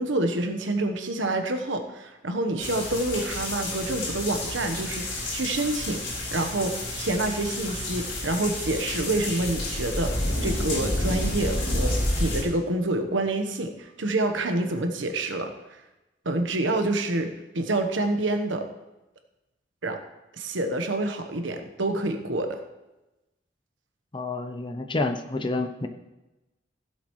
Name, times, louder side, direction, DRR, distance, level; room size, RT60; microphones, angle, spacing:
voice 1, 0.0-6.0 6.3-10.1 10.4-11.9 12.2-15.5 16.2-17.3 17.5-18.6 19.8-20.0 20.3-22.6, right 2 dB, 80° right, 6 dB, 1.2 m, -27 dB
sound 1, 2.6-12.4, left 1 dB, 85° left, 4.4 m, -30 dB
voice 2, 24.1-25.9, left 2 dB, 25° left, 7 dB, 0.8 m, -29 dB
16.5 x 7.9 x 3.2 m, 1.0 s
head